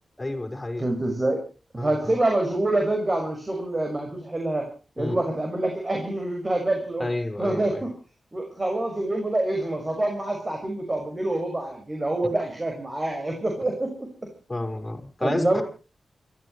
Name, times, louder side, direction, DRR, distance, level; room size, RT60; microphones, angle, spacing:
voice 1, 0.2-0.8 1.8-2.1 5.0-5.2 7.0-7.9 14.5-15.6, left 2 dB, 20° left, 4 dB, 5.3 m, -30 dB
voice 2, 0.8-1.4 1.7-4.7 5.0-7.1 7.4-7.9 8.3-13.9 15.2-15.6, right 2 dB, 25° right, 2 dB, 6.0 m, -26 dB
29.5 x 14.0 x 3.2 m, 0.36 s
cardioid pair, 70°, 0 cm